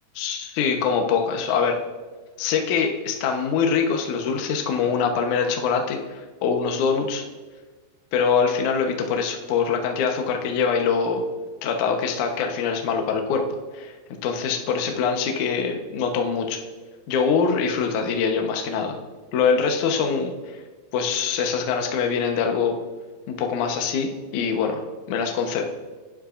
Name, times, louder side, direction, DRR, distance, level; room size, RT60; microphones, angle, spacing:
voice 1, 0.2-1.8 2.4-7.2 8.1-11.3 11.6-13.4 13.7-13.9 14.2-16.6 17.1-19.0 19.3-20.6 20.9-22.8 23.3-24.8 25.1-25.6, left 6 dB, 70° left, 3 dB, 1.8 m, -24 dB
18.0 x 11.5 x 2.6 m, 1.4 s
omnidirectional pair, 5.1 m